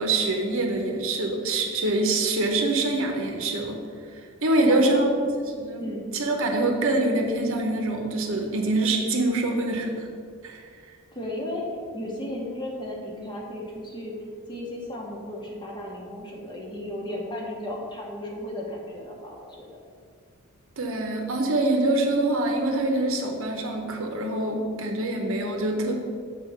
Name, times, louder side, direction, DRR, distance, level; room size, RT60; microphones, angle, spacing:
voice 1, 0.0-3.8 4.4-5.1 5.6-5.9 6.1-10.1 10.4-10.6 20.8-25.9, right 2 dB, 65° right, 2 dB, 0.9 m, -25 dB
voice 2, 4.6-5.0 5.8-6.1 11.1-11.6 11.9-14.2 14.5-19.7, left 1 dB, 20° left, -2 dB, 1.1 m, -34 dB
6.6 x 3.7 x 5.6 m, 2.1 s
head